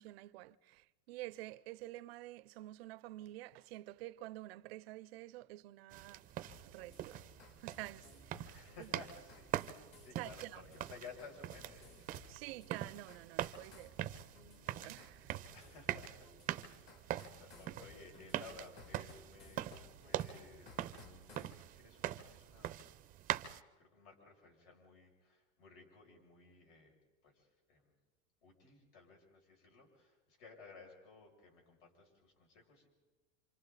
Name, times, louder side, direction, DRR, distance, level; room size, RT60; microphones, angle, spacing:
voice 1, 0.0-6.2 6.7-7.2 7.6-8.9 10.2-10.6 12.3-14.0 14.8-15.5, right 17 dB, 65° right, 0.6 m, -49 dB
sound 1, 5.9-23.6, right 13 dB, 25° right, 0.6 m, -44 dB
sound 2, 6.4-21.6, left 4 dB, 35° left, 2.6 m, -60 dB
voice 2, 8.5-9.7 10.0-12.4 15.5-16.3 17.1-19.7 20.0-21.0 21.4-22.8 23.8-26.9 27.2-27.9 28.4-32.9, left 4 dB, 60° left, 6.7 m, -57 dB
27.5 x 27.0 x 4.1 m
supercardioid pair, 150°, 33 cm